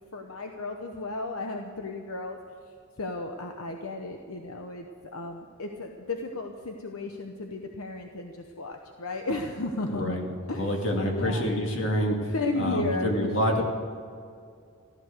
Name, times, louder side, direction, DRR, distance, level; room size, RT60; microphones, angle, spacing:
voice 1, 0.1-2.4 3.0-10.2 10.5-10.7 11.1-11.5 12.3-13.6, left 2 dB, 80° left, 4 dB, 1.0 m, -34 dB
voice 2, 9.9-10.2 10.5-13.6, equal, 60° left, 1 dB, 2.4 m, -27 dB
14.5 x 12.5 x 6.6 m, 2.3 s
head